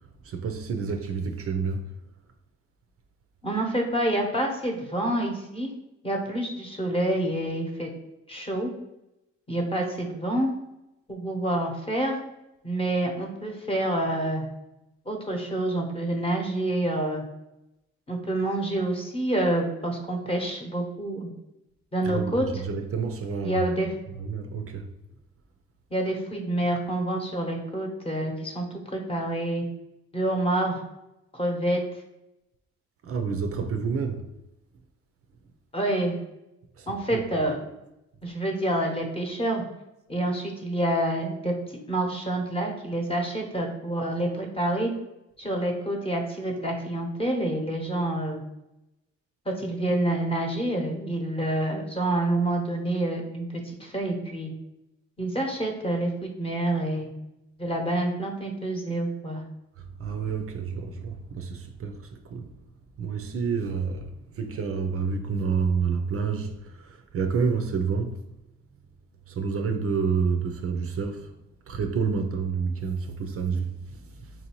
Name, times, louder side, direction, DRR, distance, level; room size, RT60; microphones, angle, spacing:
voice 1, 0.2-1.9 22.0-22.3 22.6-23.6 24.2-24.9 33.0-34.2 36.8-37.2 60.0-62.5 63.0-68.1 69.3-71.3 71.7-74.0, right 5 dB, 50° right, 0.5 m, -29 dB
voice 2, 3.4-5.7 6.0-7.9 8.3-8.7 9.5-10.5 11.1-12.2 12.6-14.4 15.1-17.2 18.1-21.3 21.9-22.6 23.4-23.9 25.9-29.6 30.1-30.8 31.3-31.8 35.7-36.2 36.9-37.6 38.2-39.6 40.1-44.9 45.4-48.4 49.4-54.5 55.2-57.1 57.6-59.4, right 1 dB, 20° left, 0.9 m, -27 dB
4.6 x 2.7 x 3.0 m
cardioid pair, 90°, 30 cm